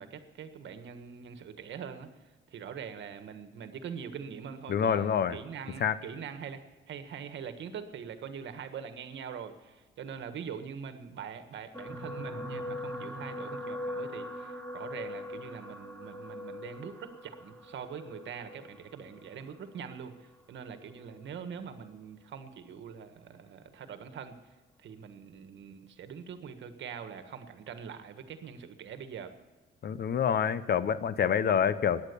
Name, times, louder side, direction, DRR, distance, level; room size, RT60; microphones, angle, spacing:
voice 1, 0.0-2.1 2.5-24.4 24.8-29.3, right 7 dB, 65° right, 9 dB, 1.6 m, -43 dB
voice 2, 4.7-5.4 5.8-6.0 29.8-32.1, left 8 dB, 55° left, 15 dB, 0.9 m, -27 dB
sound 1, 11.7-20.2 21.0-21.2 21.5-21.6, left 1 dB, 5° left, 2.4 m, -41 dB
15.0 x 10.5 x 6.9 m, 1.2 s
cardioid pair, 90°, 20 cm